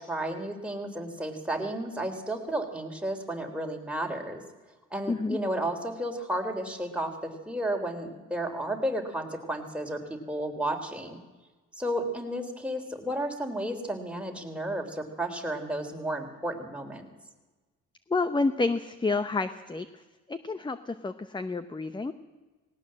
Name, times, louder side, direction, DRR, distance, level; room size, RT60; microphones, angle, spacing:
voice 1, 0.0-4.4 4.9-11.2 11.7-17.1, right 1 dB, 5° right, 3 dB, 3.4 m, -32 dB
voice 2, 5.1-5.4 18.1-19.9 20.3-22.1, left 3 dB, 15° left, 12 dB, 0.9 m, -29 dB
18.5 x 18.0 x 7.6 m, 1.2 s
cardioid pair, 90°, 30 cm